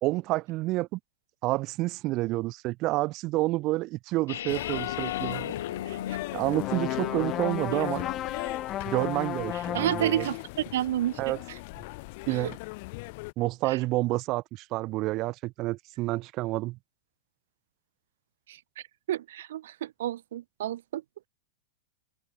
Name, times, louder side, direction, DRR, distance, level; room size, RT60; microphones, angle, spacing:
voice 1, 0.0-1.0 1.4-5.5 6.3-8.0 8.9-10.3 11.2-11.4 12.3-12.6 13.4-16.8, right 19 dB, 40° right, 0.9 m, -29 dB
sound 1, 4.3-8.3, left 11 dB, 85° left, 0.9 m, -37 dB
sound 2, 4.5-13.3, left 26 dB, 55° left, 5.8 m, -39 dB
voice 2, 5.8-6.2 9.7-10.4 10.7-11.2 12.3-12.5 13.7-13.8 18.5-18.6 19.1-21.3, right 12 dB, 75° right, 1.1 m, -30 dB
sound 3, 6.5-10.4, left 12 dB, 30° left, 2.9 m, -33 dB
supercardioid pair, 145°, 0 cm